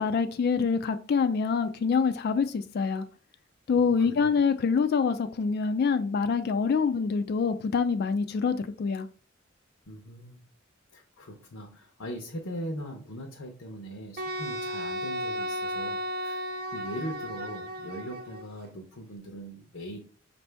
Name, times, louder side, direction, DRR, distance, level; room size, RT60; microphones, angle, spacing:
voice 1, 0.0-3.0 3.7-9.1, left 5 dB, 50° left, 0.3 m, -26 dB
voice 2, 3.8-4.4 9.9-10.4 10.9-20.0, equal, 90° left, 0.9 m, -40 dB
Wind instrument woodwind instrument, 14.2-18.5, equal, 50° right, 0.5 m, -34 dB
5.2 x 2.6 x 3.3 m
head